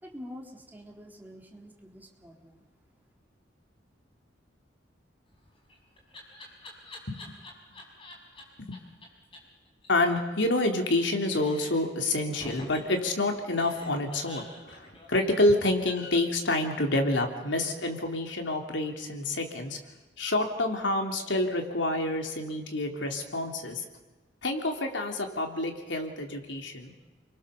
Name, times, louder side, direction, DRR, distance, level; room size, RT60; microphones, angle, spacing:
voice 1, 0.0-2.7, left 1 dB, 10° right, 0 dB, 3.5 m, -46 dB
Laughter, 5.3-8.4 8.7-8.8 9.0-9.1 9.3-9.4 9.7-11.0 11.2-11.9 12.4-16.1, left 1 dB, 30° left, 6.4 m, -47 dB
voice 2, 9.9-19.8 20.2-23.8 24.4-26.9, left 2 dB, 85° left, 3 dB, 3.5 m, -28 dB
30.0 x 23.0 x 7.0 m, 1.2 s
head